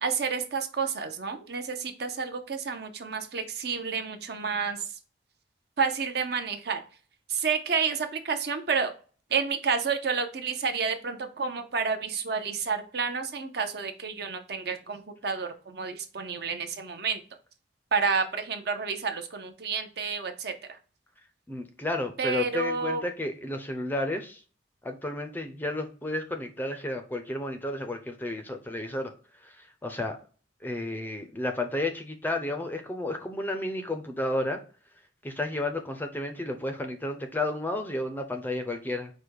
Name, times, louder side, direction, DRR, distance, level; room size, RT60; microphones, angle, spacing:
voice 1, 0.0-4.8 5.8-6.8 7.3-8.9 9.3-17.2 17.9-20.5 22.2-23.0, right 5 dB, 55° right, 7 dB, 0.6 m, -30 dB
voice 2, 21.5-24.4 24.8-29.1 29.4-29.5 29.8-30.2 30.6-34.6 35.2-39.1, left 1 dB, 10° left, 6 dB, 0.4 m, -32 dB
5.0 x 2.1 x 4.5 m, 0.39 s
head